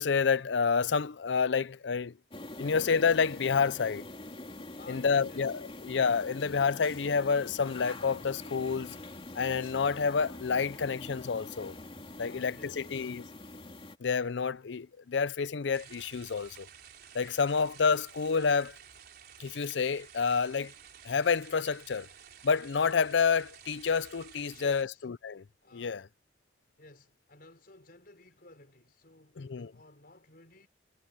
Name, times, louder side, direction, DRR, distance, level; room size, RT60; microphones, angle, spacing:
voice 1, 0.0-2.1 2.6-4.0 4.9-9.0 9.4-11.8 12.2-13.2 14.0-16.7 17.1-18.8 19.4-20.7 21.0-22.1 22.4-25.4 25.7-26.1 29.4-29.7, left 5 dB, 80° left, 0.6 m, -29 dB
sound 1, 2.3-14.0, left 2 dB, 30° left, 2.9 m, -45 dB
voice 2, 4.7-5.6 12.2-12.9 24.4-25.1 25.6-26.1 26.8-30.7, left 2 dB, 55° left, 5.3 m, -55 dB
sound 2, 15.7-24.8, right 8 dB, 60° right, 4.2 m, -53 dB
head